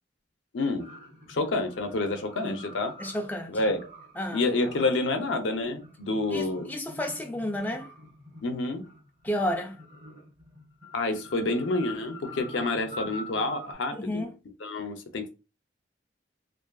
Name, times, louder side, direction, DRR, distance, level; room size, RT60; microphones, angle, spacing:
voice 1, 0.5-0.9 1.3-2.9 3.5-3.9 4.3-6.7 8.4-8.8 10.9-14.3 14.6-15.3, left 2 dB, 80° left, 0.5 m, -28 dB
sound 1, 0.8-13.7, left 1 dB, 80° right, 1.2 m, -46 dB
voice 2, 3.0-3.6 4.2-4.4 6.3-7.9 9.2-9.8 13.9-14.4, left 1 dB, 10° left, 0.3 m, -32 dB
2.5 x 2.4 x 2.2 m
head